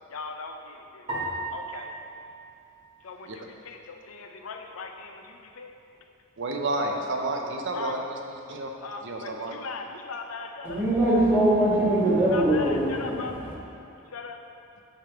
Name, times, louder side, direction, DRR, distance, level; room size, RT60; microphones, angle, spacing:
voice 1, 0.1-1.1 1.5-2.0 3.0-5.7 7.7-7.9 8.8-10.8 12.3-13.3 14.1-14.4, left 4 dB, 80° left, 4 dB, 0.6 m, -39 dB
sound 1, 1.1-3.6, right 2 dB, 30° right, 1.8 m, -37 dB
voice 2, 6.4-8.2 8.5-8.7 9.0-9.5, right 2 dB, 60° right, 2 dB, 0.6 m, -30 dB
voice 3, 10.6-13.5, right 1 dB, 10° right, -8 dB, 1.7 m, -22 dB
8.7 x 3.4 x 5.7 m, 2.6 s
head